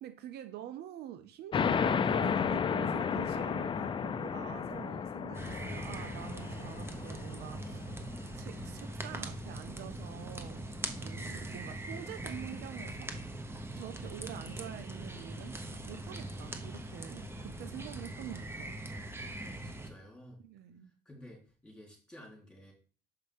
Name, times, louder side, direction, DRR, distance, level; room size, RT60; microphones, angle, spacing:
voice 1, 0.0-7.8 8.4-10.8 11.0-13.1 13.8-18.8 20.4-20.9, right 11 dB, 75° right, 0.6 m, -46 dB
sound 1, 1.5-8.7, left 6 dB, 30° left, 0.4 m, -33 dB
sound 2, 5.3-19.9, right 1 dB, 15° right, 0.9 m, -41 dB
voice 2, 19.4-20.4 21.0-22.7, equal, 5° left, 3.1 m, -53 dB
6.7 x 5.4 x 3.4 m
cardioid pair, 110°, 17 cm